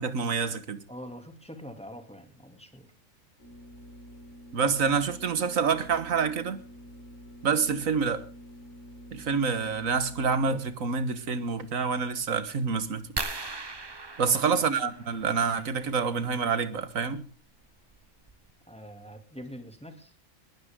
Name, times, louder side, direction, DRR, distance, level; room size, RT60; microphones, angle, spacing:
voice 1, 0.0-0.8 4.5-6.6 7.4-8.3 9.1-13.3 14.2-17.2, right 5 dB, 70° right, 1.8 m, -27 dB
voice 2, 0.9-2.9 14.2-14.6 18.7-20.1, equal, 5° left, 2.6 m, -44 dB
sound 1, 3.4-13.2, equal, 55° left, 5.2 m, -49 dB
sound 2, 13.2-15.5 17.1-17.3 17.9-18.0 18.3-18.5, right 3 dB, 20° right, 0.8 m, -37 dB
20.5 x 16.5 x 3.7 m
omnidirectional pair, 1.5 m